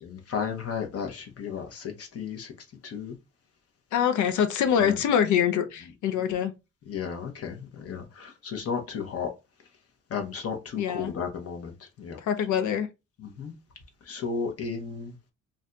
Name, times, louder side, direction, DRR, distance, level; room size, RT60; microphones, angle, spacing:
voice 1, 0.0-2.5 2.8-3.2 4.7-5.0 6.9-9.3 10.1-12.2 13.2-13.5 14.0-15.1, left 6 dB, 55° left, 0.8 m, -34 dB
voice 2, 3.9-6.5 10.8-11.1 12.2-12.9, left 8 dB, 80° left, 0.5 m, -24 dB
2.5 x 2.2 x 3.7 m
cardioid pair, 145°, 29 cm